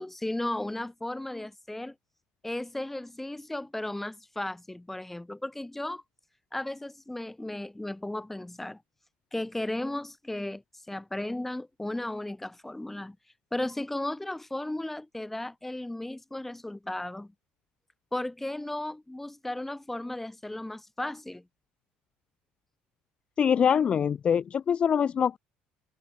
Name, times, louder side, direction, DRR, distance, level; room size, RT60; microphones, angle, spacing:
voice 1, 0.0-1.9 2.4-6.0 6.5-8.8 9.3-13.2 13.5-17.3 18.1-21.5, left 1 dB, 5° left, 2.9 m, -35 dB
voice 2, 23.4-25.4, left 7 dB, 35° left, 0.6 m, -24 dB
cardioid pair, 110°, 3 cm